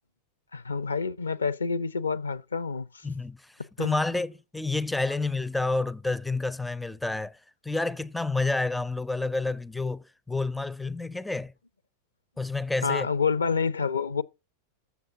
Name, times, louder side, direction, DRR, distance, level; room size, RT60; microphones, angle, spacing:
voice 1, 0.5-3.1 3.8-4.0 12.8-14.2, left 5 dB, 75° left, 0.6 m, -28 dB
voice 2, 3.0-3.4 3.8-7.4 7.6-11.5 12.4-13.1, left 3 dB, 5° left, 0.4 m, -29 dB
7.0 x 7.0 x 7.6 m
figure-of-eight pair, 90°, 0 cm